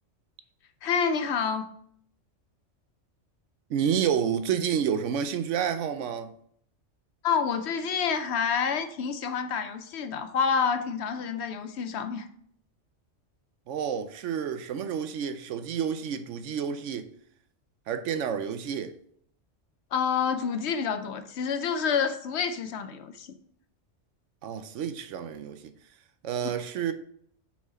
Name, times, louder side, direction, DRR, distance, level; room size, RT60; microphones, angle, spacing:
voice 1, 0.8-1.6 7.2-12.3 19.9-23.3, left 6 dB, 65° left, 0.8 m, -28 dB
voice 2, 3.7-6.3 13.7-17.1 17.9-18.9 24.4-25.6 26.2-26.9, right 8 dB, 80° right, 0.9 m, -29 dB
5.9 x 4.3 x 4.1 m
omnidirectional pair, 1.3 m